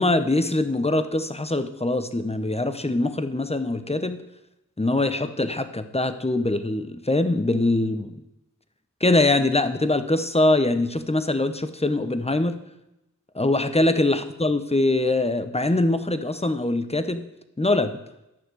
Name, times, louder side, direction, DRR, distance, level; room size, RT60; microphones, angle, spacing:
voice 1, 0.0-4.2 4.8-8.2 9.0-12.5 13.3-17.2 17.6-18.0, left 2 dB, 20° left, 10 dB, 0.9 m, -23 dB
10.5 x 5.9 x 8.2 m, 0.88 s
wide cardioid pair, 65°, 32 cm